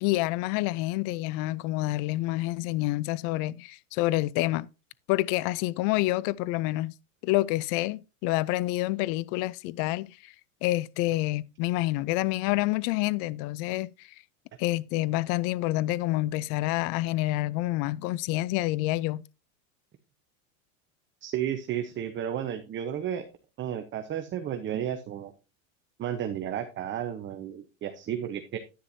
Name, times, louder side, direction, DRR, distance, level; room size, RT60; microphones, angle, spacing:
voice 1, 0.0-4.7 5.1-6.9 7.2-10.3 10.6-14.1 14.6-19.2, left 18 dB, 50° left, 0.5 m, -28 dB
voice 2, 21.2-23.3 23.6-25.3 26.0-28.6, right 10 dB, 30° right, 0.8 m, -32 dB
10.0 x 9.7 x 2.7 m
supercardioid pair, 125°, 41 cm